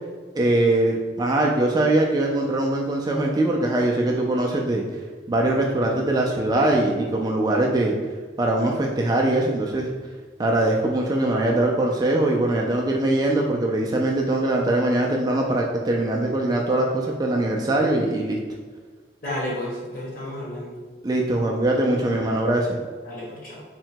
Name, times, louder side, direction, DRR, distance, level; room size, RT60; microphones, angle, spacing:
voice 1, 0.3-4.8 5.3-7.9 8.4-9.9 10.4-18.4 21.0-22.8, right 1 dB, 20° right, -1 dB, 0.3 m, -22 dB
voice 2, 19.2-20.8 23.0-23.6, left 1 dB, 50° left, -6 dB, 1.4 m, -32 dB
3.7 x 2.2 x 4.4 m, 1.5 s
head